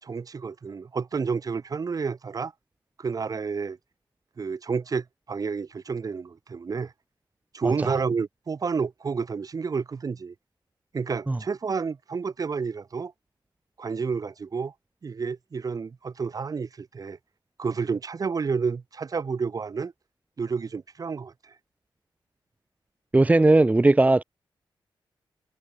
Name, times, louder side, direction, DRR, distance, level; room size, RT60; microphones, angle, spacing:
voice 1, 0.0-2.5 3.0-3.8 4.4-6.9 7.5-10.3 10.9-13.1 13.8-14.7 15.0-17.2 17.6-19.9 20.4-21.5, right 5 dB, 45° right, 3.6 m, -30 dB
voice 2, 23.1-24.2, right 2 dB, 15° right, 1.2 m, -18 dB
wide cardioid pair, 125°, 9 cm